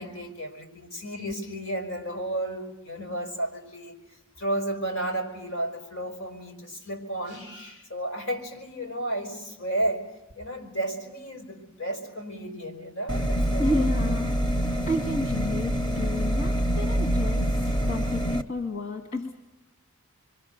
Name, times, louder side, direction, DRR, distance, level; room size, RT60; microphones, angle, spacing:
voice 1, 0.0-3.9 4.4-10.0 10.4-14.1, right 1 dB, 85° left, 3 dB, 5.4 m, -33 dB
sound 1, 13.1-18.4, equal, 20° left, 0.7 m, -26 dB
voice 2, 13.6-14.4 14.9-19.3, left 1 dB, 55° left, 3 dB, 1.9 m, -31 dB
27.5 x 23.5 x 6.6 m, 0.99 s
head